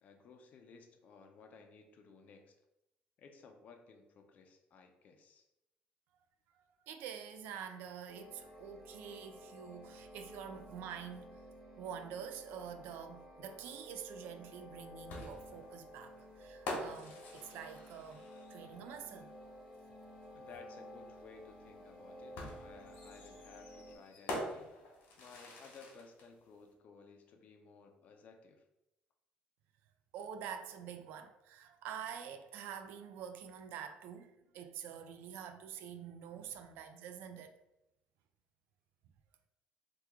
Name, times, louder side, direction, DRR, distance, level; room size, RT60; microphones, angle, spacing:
voice 1, 0.0-2.6 3.2-5.5 20.3-24.7 25.2-28.6, left 5 dB, 50° left, 0.5 m, -57 dB
voice 2, 6.5-11.4 11.8-18.2 18.5-19.5 30.1-37.6, right 8 dB, 85° right, 0.3 m, -47 dB
sound 1, 8.1-24.0, equal, ahead, 0.8 m, -53 dB
sound 2, 15.1-18.7 20.2-20.3 22.4-26.3, left 1 dB, 75° left, 1.0 m, -45 dB
3.0 x 2.3 x 3.5 m
cardioid pair, 155°, 3 cm